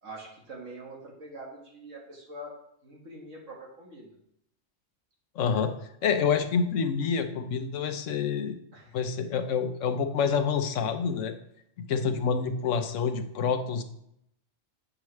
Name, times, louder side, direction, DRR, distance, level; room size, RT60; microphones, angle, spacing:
voice 1, 0.0-4.1 5.5-5.6 8.7-9.3, right 1 dB, 80° right, -2 dB, 2.1 m, -45 dB
voice 2, 5.4-5.7 6.0-8.5 8.9-11.3 11.9-13.8, left 6 dB, 80° left, 8 dB, 1.1 m, -27 dB
8.8 x 5.8 x 3.2 m, 0.74 s
omnidirectional pair, 1.3 m